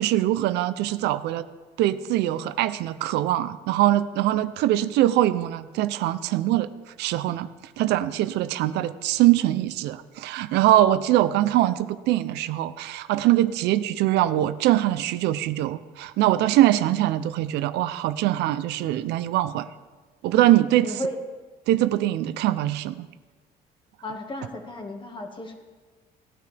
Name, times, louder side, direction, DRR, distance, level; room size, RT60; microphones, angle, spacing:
voice 1, 0.0-1.4 1.8-6.7 7.0-7.5 7.8-19.7 20.2-20.9 21.7-23.1, right 14 dB, 85° right, 14 dB, 0.5 m, -22 dB
voice 2, 20.8-21.2 24.0-25.5, left 1 dB, 30° left, 3 dB, 1.8 m, -33 dB
17.5 x 9.6 x 3.4 m, 1.3 s
cardioid pair, 110°, 17 cm